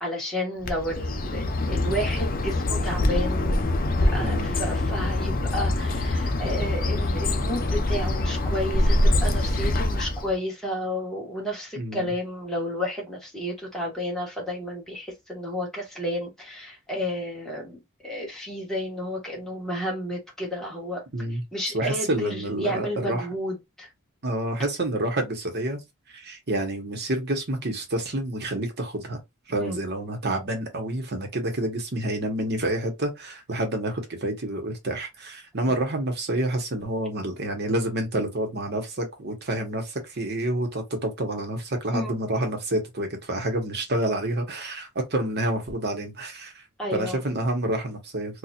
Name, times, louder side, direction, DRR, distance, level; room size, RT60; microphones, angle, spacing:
voice 1, 0.0-3.7 4.1-21.0 21.5-23.9 29.6-29.8 41.9-42.2 46.8-47.2, left 1 dB, 5° left, 1.4 m, -31 dB
Bird, 0.6-10.3, left 1 dB, 40° left, 0.6 m, -24 dB
voice 2, 4.2-4.5 11.8-12.1 21.1-23.2 24.2-25.8 26.1-29.2 29.5-46.6 46.9-48.4, right 1 dB, 50° right, 1.0 m, -28 dB
4.3 x 2.4 x 2.4 m
head